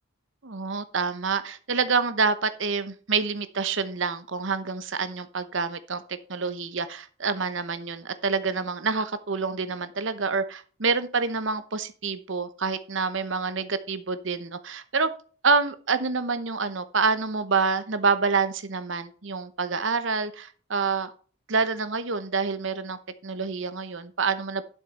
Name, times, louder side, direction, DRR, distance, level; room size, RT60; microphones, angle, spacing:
voice 1, 0.4-15.1 15.4-21.1 21.5-24.6, right 4 dB, 65° right, 12 dB, 0.9 m, -27 dB
11.5 x 6.5 x 4.3 m, 0.40 s
head